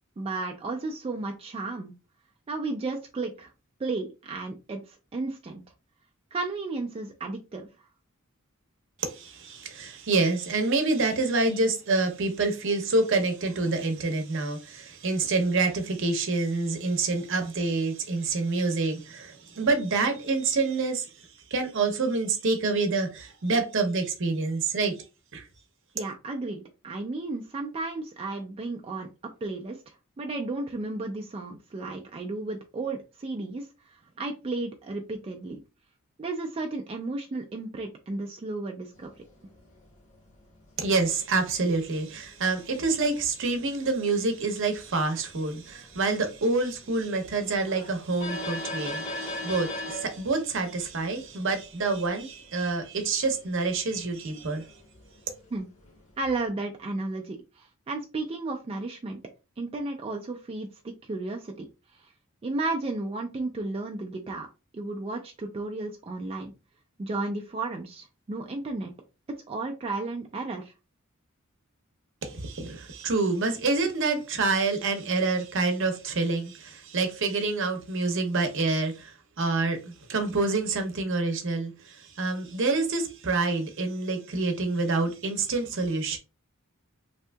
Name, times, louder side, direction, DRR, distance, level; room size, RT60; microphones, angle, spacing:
voice 1, 0.2-1.9 2.5-3.5 3.8-5.6 6.3-7.7 25.9-29.1 29.4-35.6 36.2-39.1 55.5-55.7 56.2-59.2 59.6-61.7 61.9-62.1 62.4-64.5 64.7-66.5 67.0-68.9 69.5-70.7, right 3 dB, 25° right, 0.3 m, -33 dB
voice 2, 9.0-25.0 25.3-25.5 40.8-54.6 72.2-86.2, right 3 dB, 60° right, 0.7 m, -27 dB
sound 1, 38.9-56.5, left 1 dB, 35° left, 0.7 m, -42 dB
3.5 x 2.7 x 2.2 m
head